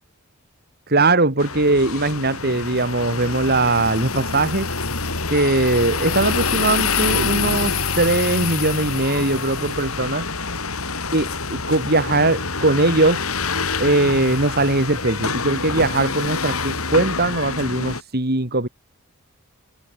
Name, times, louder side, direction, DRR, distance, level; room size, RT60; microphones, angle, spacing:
voice 1, 0.9-4.7 5.3-10.3 11.1-13.3 13.8-18.7, right 2 dB, 50° right, 3.5 m, -20 dB
sound 1, 1.4-18.0, left 4 dB, 80° left, 5.9 m, -26 dB
head